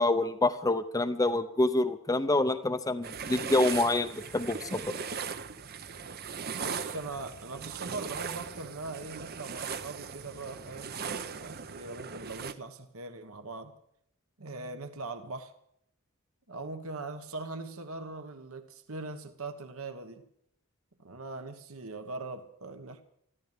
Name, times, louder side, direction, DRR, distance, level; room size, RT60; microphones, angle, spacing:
voice 1, 0.0-4.9, left 2 dB, 15° left, 0.7 m, -27 dB
sound 1, 3.0-12.5, right 6 dB, 45° right, 0.8 m, -39 dB
voice 2, 6.5-13.7 14.4-15.5 16.5-20.2 21.0-23.0, right 3 dB, 65° right, 1.4 m, -41 dB
14.0 x 13.5 x 7.3 m
head